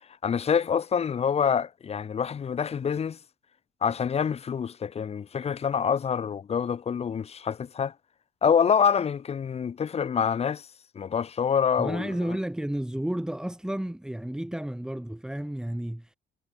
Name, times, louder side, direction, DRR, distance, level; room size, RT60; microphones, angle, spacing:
voice 1, 0.2-3.2 3.8-7.9 8.4-10.7 11.0-12.1, left 7 dB, 35° left, 1.9 m, -26 dB
voice 2, 11.8-16.1, right 1 dB, 5° right, 7.0 m, -32 dB
cardioid pair, 110°, 17 cm